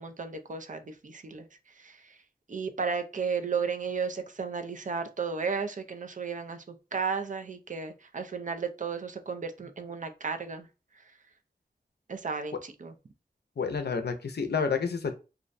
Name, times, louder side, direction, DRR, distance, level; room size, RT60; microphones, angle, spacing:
voice 1, 0.0-1.5 1.8-2.2 2.5-10.7 12.1-12.9, right 5 dB, 50° right, 6 dB, 0.4 m, -34 dB
voice 2, 13.6-15.1, left 5 dB, 80° left, 7 dB, 0.5 m, -29 dB
2.4 x 2.1 x 2.5 m, 0.30 s
wide cardioid pair, 50°, 17 cm